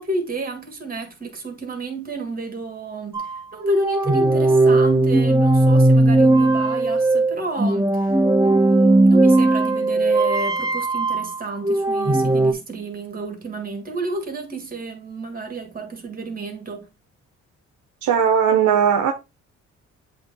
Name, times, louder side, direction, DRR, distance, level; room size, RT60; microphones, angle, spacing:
voice 1, 0.0-8.1 8.4-16.9, right 3 dB, 30° right, 2.2 m, -31 dB
sound 1, 3.1-12.5, right 2 dB, 10° right, 1.0 m, -17 dB
voice 2, 18.0-19.1, right 8 dB, 75° right, 1.0 m, -18 dB
7.8 x 3.2 x 3.8 m
cardioid pair, 90°, 30 cm